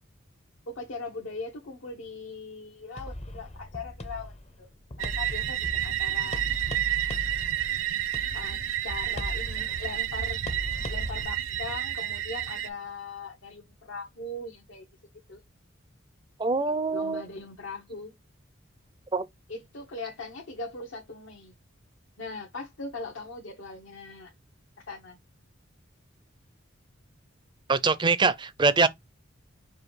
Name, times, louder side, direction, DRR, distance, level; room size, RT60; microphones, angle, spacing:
voice 1, 0.7-4.7 5.0-6.8 8.3-10.4 10.9-14.9 15.3-15.4 16.9-18.1 19.5-21.5 22.2-24.3 24.8-25.2, left 3 dB, 75° left, 0.9 m, -40 dB
sound 1, 3.0-11.2, left 1 dB, 30° left, 0.6 m, -39 dB
sound 2, 5.0-12.7, right 11 dB, 75° right, 0.5 m, -30 dB
voice 2, 16.4-17.2 19.1-19.2 27.7-28.9, right 4 dB, 20° right, 0.4 m, -23 dB
5.0 x 2.3 x 4.3 m
head